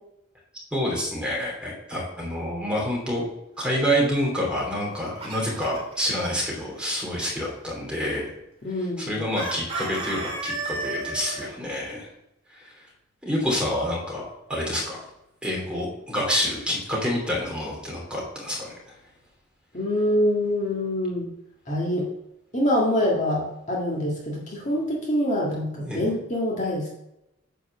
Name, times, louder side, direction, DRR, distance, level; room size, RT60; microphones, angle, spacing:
voice 1, 0.7-3.2 3.6-8.3 9.0-12.1 12.5-12.8 13.2-14.2 14.5-15.0 15.4-19.0 25.8-26.0, equal, 5° right, -3 dB, 2.9 m, -27 dB
Chicken rooster, 4.7-5.9 9.3-11.5, right 2 dB, 30° right, 2.4 m, -32 dB
voice 2, 8.6-9.2 19.7-21.3 21.7-22.1 22.5-26.9, left 1 dB, 35° left, -3 dB, 1.7 m, -25 dB
9.2 x 4.6 x 6.6 m, 0.85 s
head